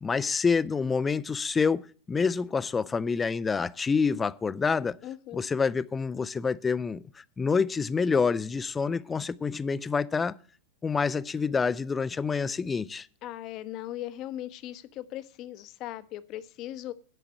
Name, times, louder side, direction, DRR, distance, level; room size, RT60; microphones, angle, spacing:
voice 1, 0.0-5.0 5.3-10.4 10.8-13.1, left 5 dB, 15° left, 0.5 m, -27 dB
voice 2, 5.0-5.4 13.2-16.9, left 13 dB, 40° left, 0.9 m, -38 dB
12.5 x 5.9 x 7.6 m
figure-of-eight pair, 90°, 0 cm